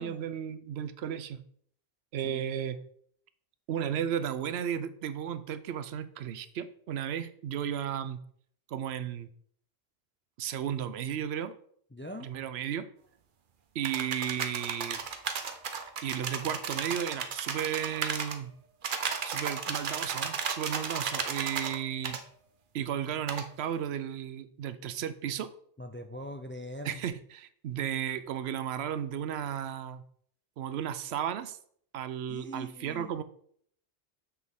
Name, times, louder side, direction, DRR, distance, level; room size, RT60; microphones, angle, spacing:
voice 1, 0.0-1.4 2.1-2.8 3.7-8.2 8.7-9.3 10.4-11.5 12.2-12.9 13.7-15.0 16.0-18.5 19.2-22.2 22.7-25.5 26.8-30.0 30.6-31.6 31.9-33.2, right 9 dB, 85° right, 13 dB, 0.9 m, -34 dB
voice 2, 2.2-2.7 11.9-12.3 25.8-27.0 32.3-33.1, equal, 20° left, 6 dB, 0.3 m, -42 dB
sound 1, 13.8-18.4 18.8-21.8 22.0-22.2 23.3-23.5, right 6 dB, 55° right, 0.8 m, -34 dB
7.5 x 6.2 x 3.6 m, 0.62 s
omnidirectional pair, 1.0 m